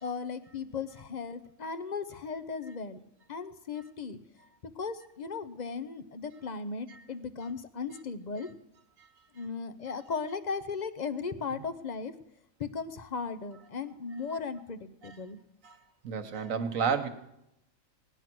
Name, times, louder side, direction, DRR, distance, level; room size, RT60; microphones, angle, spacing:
voice 1, 0.0-3.0 3.3-4.2 4.8-8.5 9.3-12.1 12.6-15.4, left 5 dB, 40° left, 11 dB, 0.7 m, -37 dB
voice 2, 16.0-17.1, right 6 dB, 80° right, 9 dB, 1.5 m, -31 dB
18.5 x 10.0 x 6.1 m, 0.82 s
omnidirectional pair, 1.4 m